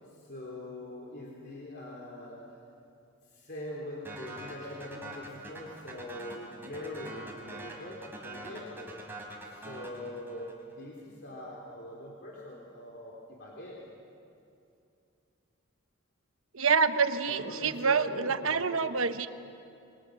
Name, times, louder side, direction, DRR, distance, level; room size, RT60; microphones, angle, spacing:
voice 1, 0.2-2.4 3.2-8.9 9.4-13.8 17.3-18.8, left 1 dB, 55° left, -3 dB, 3.4 m, -43 dB
sound 1, 4.0-10.7, right 2 dB, 10° right, 3.5 m, -45 dB
voice 2, 16.5-19.3, right 5 dB, 80° right, 10 dB, 1.1 m, -27 dB
27.0 x 23.0 x 6.6 m, 2.6 s
head